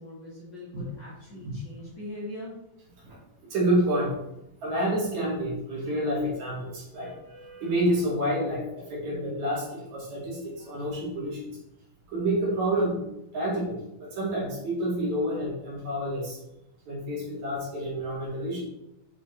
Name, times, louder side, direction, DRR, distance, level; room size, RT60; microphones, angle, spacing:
voice 1, 0.0-2.6, left 1 dB, 40° left, -5 dB, 2.1 m, -41 dB
voice 2, 3.5-4.1 4.6-11.5 12.1-13.0 13.3-16.4 16.9-18.6, right 1 dB, 55° right, -6 dB, 3.7 m, -28 dB
8.3 x 4.9 x 4.0 m, 0.87 s
omnidirectional pair, 4.0 m